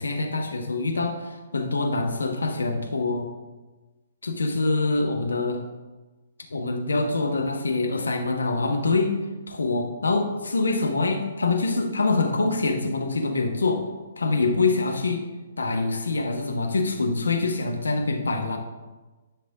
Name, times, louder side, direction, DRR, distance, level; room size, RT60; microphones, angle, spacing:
voice 1, 0.0-1.2 1.5-3.3 4.2-5.6 6.5-9.1 9.5-13.8 14.2-15.2 15.6-18.6, left 3 dB, 70° left, 3 dB, 1.2 m, -25 dB
10.0 x 5.6 x 3.6 m, 1.2 s
figure-of-eight pair, 125°, 0 cm